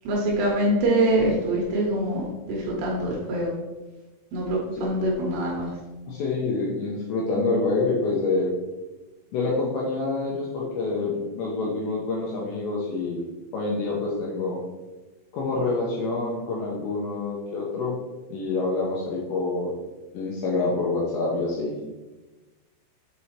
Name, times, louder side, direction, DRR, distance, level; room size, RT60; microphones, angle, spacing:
voice 1, 0.1-3.5 4.3-5.7, right 1 dB, 80° right, -2 dB, 2.5 m, -24 dB
voice 2, 6.1-8.5 9.3-13.2 13.5-14.6 15.3-18.0 18.3-19.7 20.1-21.7, left 3 dB, 80° left, -3 dB, 2.7 m, -27 dB
6.8 x 4.8 x 2.8 m, 1.1 s
omnidirectional pair, 5.8 m